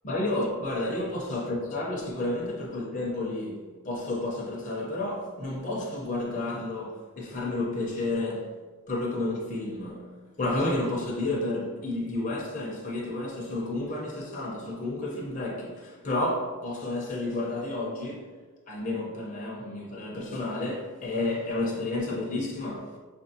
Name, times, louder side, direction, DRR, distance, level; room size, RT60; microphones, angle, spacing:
voice 1, 0.0-8.5 8.9-18.3 18.7-22.9, left 2 dB, 40° left, 0.6 m, -31 dB
4.7 x 2.6 x 2.7 m
head